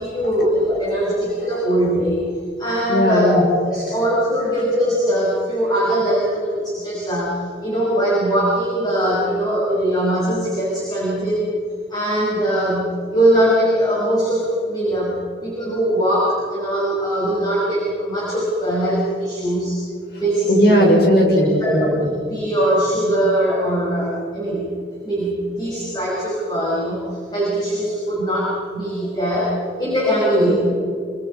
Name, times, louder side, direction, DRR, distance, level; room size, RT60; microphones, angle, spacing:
voice 1, 0.0-2.3 2.6-11.5 11.9-19.8 20.2-20.9 21.6-30.5, equal, 20° left, -6 dB, 5.6 m, -21 dB
voice 2, 2.9-3.4 20.1-20.2 20.5-21.8 30.5-30.6, equal, 55° left, 0 dB, 5.8 m, -16 dB
26.0 x 23.5 x 5.5 m, 2.3 s
head